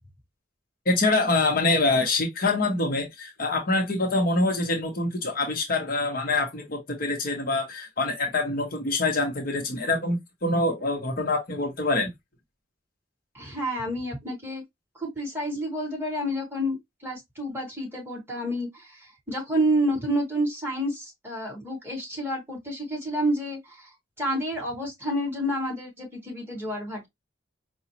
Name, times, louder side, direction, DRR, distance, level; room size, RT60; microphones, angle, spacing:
voice 1, 0.9-12.1, left 2 dB, 50° left, 0.9 m, -25 dB
voice 2, 13.3-14.6 15.0-23.9 24.2-27.1, equal, 15° right, 2.0 m, -29 dB
4.9 x 2.3 x 2.9 m
head